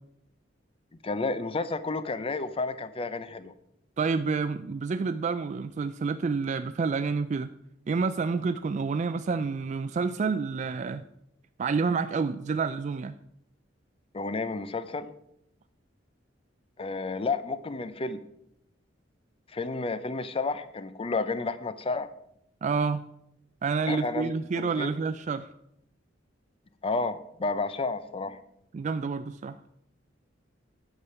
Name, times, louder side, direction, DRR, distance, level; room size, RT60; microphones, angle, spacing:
voice 1, 1.0-3.5 14.1-15.1 16.8-18.2 19.5-22.1 23.9-24.3 24.6-24.9 26.8-28.4, left 3 dB, 30° left, 13 dB, 0.5 m, -31 dB
voice 2, 4.0-7.5 7.9-11.0 11.6-13.1 22.6-23.0 23.6-25.5 28.7-29.6, right 4 dB, 40° right, 10 dB, 0.3 m, -28 dB
9.8 x 6.9 x 5.7 m, 0.78 s
head